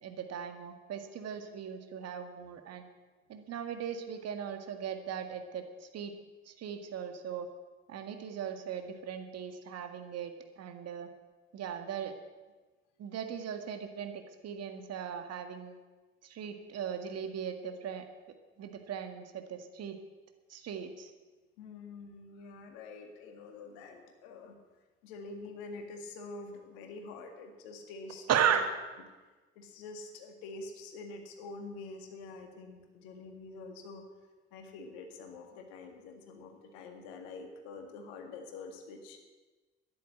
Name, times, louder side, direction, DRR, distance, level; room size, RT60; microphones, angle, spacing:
voice 1, 0.0-2.9 3.3-6.1 6.5-7.5 7.9-11.1 11.5-12.1 13.0-15.8 16.2-18.1 18.6-20.0 20.5-21.1 28.3-28.7, right 8 dB, 55° right, 7 dB, 1.8 m, -37 dB
voice 2, 21.6-24.6 25.0-28.3 29.6-34.0 34.5-39.2, left 3 dB, 75° left, 5 dB, 2.0 m, -46 dB
13.0 x 11.0 x 7.8 m, 1.2 s
figure-of-eight pair, 45°, 30 cm